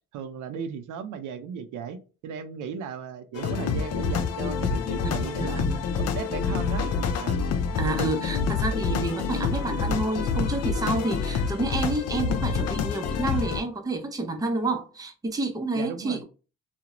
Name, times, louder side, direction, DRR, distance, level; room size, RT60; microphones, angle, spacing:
voice 1, 0.1-5.6 6.0-6.9 7.2-7.4 15.7-16.2, right 6 dB, 80° right, 0.5 m, -36 dB
sound 1, 3.3-13.6, left 5 dB, 55° left, 0.4 m, -27 dB
voice 2, 5.0-5.9 7.8-16.2, right 2 dB, 10° right, 0.5 m, -29 dB
2.4 x 2.0 x 2.8 m
cardioid pair, 90°, 30 cm